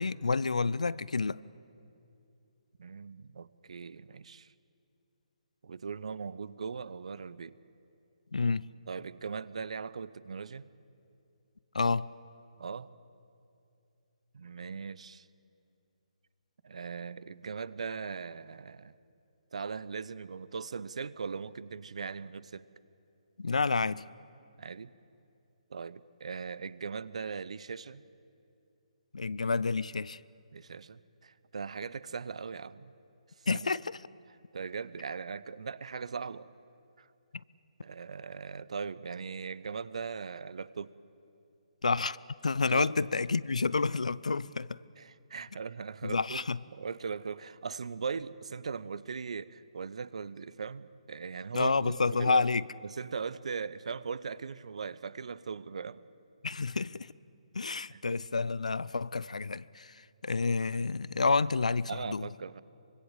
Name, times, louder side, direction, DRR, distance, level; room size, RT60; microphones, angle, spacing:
voice 1, 0.0-1.4 8.3-8.7 11.7-12.1 23.4-24.1 29.1-30.2 33.5-33.8 41.8-42.2 42.4-44.8 46.0-46.6 51.5-52.6 56.4-57.1 57.5-62.3, left 4 dB, 75° left, 0.6 m, -29 dB
voice 2, 2.8-4.5 5.6-7.5 8.9-10.7 12.6-12.9 14.3-15.3 16.6-18.9 19.5-22.7 24.6-24.9 25.7-28.0 30.5-32.9 33.4-33.6 34.5-36.5 37.0-37.1 37.8-40.9 42.7-42.9 45.0-46.4 46.7-52.4 52.8-56.0 57.9-58.0 61.9-62.6, right 5 dB, 60° right, 0.8 m, -39 dB
24.5 x 24.0 x 7.3 m
figure-of-eight pair, 140°, 4 cm